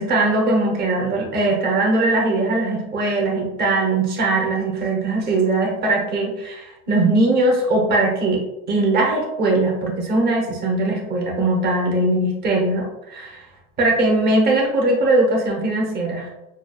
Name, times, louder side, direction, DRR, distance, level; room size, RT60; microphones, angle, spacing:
voice 1, 0.0-13.4 13.8-16.3, right 2 dB, 25° right, -1 dB, 0.8 m, -20 dB
6.1 x 2.3 x 2.2 m, 0.92 s
cardioid pair, 165°, 41 cm